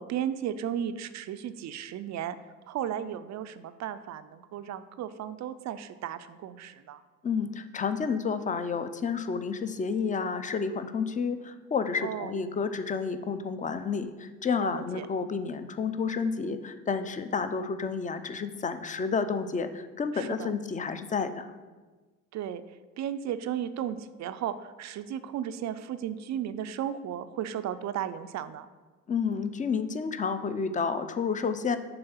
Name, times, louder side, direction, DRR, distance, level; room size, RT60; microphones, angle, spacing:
voice 1, 0.0-2.4 2.7-7.0 12.0-12.3 14.6-15.1 20.1-20.5 22.3-22.6 23.0-28.7, right 10 dB, 45° right, 12 dB, 0.4 m, -35 dB
voice 2, 7.2-21.5 29.1-31.8, left 5 dB, 20° left, 11 dB, 0.5 m, -30 dB
6.7 x 3.4 x 5.6 m, 1.3 s
hypercardioid pair, 65°, 41 cm